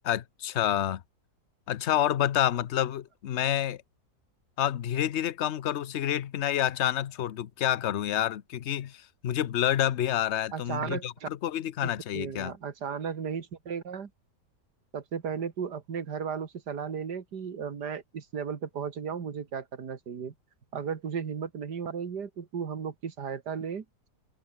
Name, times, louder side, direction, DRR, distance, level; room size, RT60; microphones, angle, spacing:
voice 1, 0.0-1.0 1.7-3.8 4.6-12.5, left 11 dB, 55° left, 0.8 m, -28 dB
voice 2, 10.5-11.3 11.8-14.1 14.9-20.3 20.7-23.8, right 6 dB, 70° right, 2.4 m, -35 dB
omnidirectional pair, 1.9 m